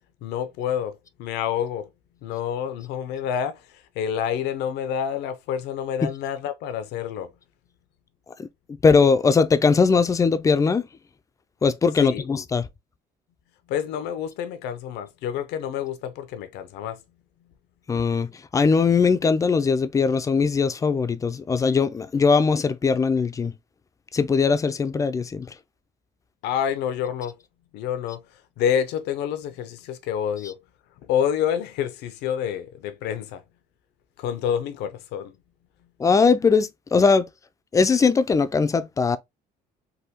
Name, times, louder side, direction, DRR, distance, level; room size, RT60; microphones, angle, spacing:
voice 1, 0.2-1.9 2.2-7.3 12.0-12.3 13.7-17.0 26.4-27.4 27.7-28.2 28.6-30.6 31.0-33.4 34.2-35.3, left 9 dB, 85° left, 0.5 m, -28 dB
voice 2, 8.8-10.9 11.6-12.7 17.9-23.5 24.1-25.5 36.0-37.3 37.7-39.2, left 5 dB, 20° left, 0.3 m, -20 dB
3.4 x 2.2 x 2.8 m
cardioid pair, 110°, 17 cm